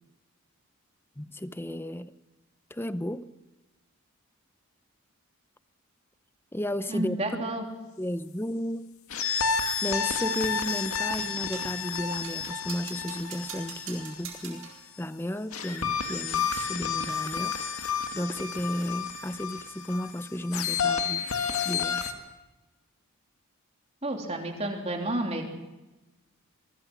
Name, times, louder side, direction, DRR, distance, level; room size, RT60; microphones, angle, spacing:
voice 1, 1.2-2.1 2.7-3.3 6.5-7.2 8.0-8.9 9.8-14.7 15.0-21.3 21.6-22.0, left 1 dB, 10° left, 0.6 m, -33 dB
voice 2, 6.9-7.6 24.0-25.5, right 1 dB, 30° right, 3.3 m, -30 dB
sound 1, 9.1-14.7 15.5-22.1, left 6 dB, 75° left, 2.0 m, -31 dB
sound 2, 11.5-11.8 12.2-14.8, right 7 dB, 65° right, 7.8 m, -43 dB
23.0 x 23.0 x 6.1 m
head